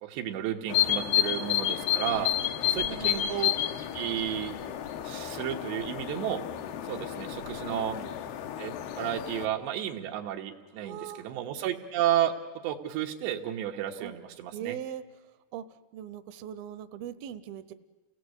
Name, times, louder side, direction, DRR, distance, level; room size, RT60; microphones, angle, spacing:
voice 1, 0.0-2.3 2.6-3.6 3.9-4.5 5.0-6.4 6.9-8.0 8.6-12.3 12.6-14.8, right 11 dB, 90° right, 3 dB, 3.6 m, -32 dB
sound 1, 0.7-9.5, left 12 dB, 75° left, 3.0 m, -31 dB
voice 2, 2.7-3.4 7.7-8.1 10.8-11.3 14.0-14.1 14.5-15.0 15.5-15.6 15.9-17.7, right 10 dB, 75° right, 11 dB, 2.4 m, -40 dB
29.0 x 18.5 x 8.1 m, 1.3 s
omnidirectional pair, 4.9 m